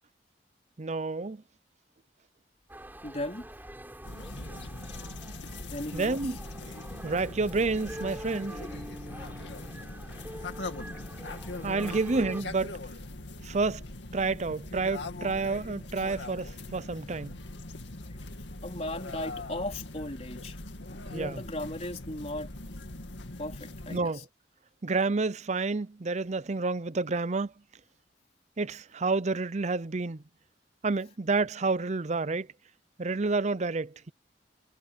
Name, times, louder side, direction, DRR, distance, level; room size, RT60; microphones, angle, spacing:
voice 1, 0.8-1.4 5.9-6.4 7.0-8.6 11.6-12.7 13.4-13.8 14.1-17.4 21.1-21.4 23.9-24.3 24.8-27.5 28.6-30.2 30.8-32.5 33.0-34.1, right 3 dB, 40° right, 0.6 m, -29 dB
sound 1, 2.7-12.4, right 1 dB, 10° right, 7.4 m, -44 dB
voice 2, 3.0-3.5 5.7-6.2 10.2-10.5 11.8-12.0 18.6-20.6 21.1-22.5 23.4-24.2, left 1 dB, 35° left, 4.1 m, -37 dB
sound 2, 4.0-24.0, left 2 dB, 85° left, 2.2 m, -41 dB
head